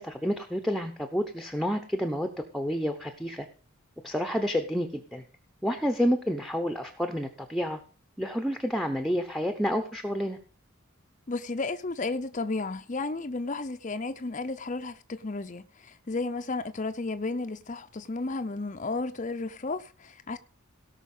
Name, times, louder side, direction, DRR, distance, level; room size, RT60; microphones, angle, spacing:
voice 1, 0.0-3.5 4.0-5.2 5.6-7.8 8.2-10.4, equal, ahead, 0.9 m, -29 dB
voice 2, 11.3-20.4, left 3 dB, 35° left, 0.6 m, -33 dB
17.5 x 5.8 x 5.5 m
head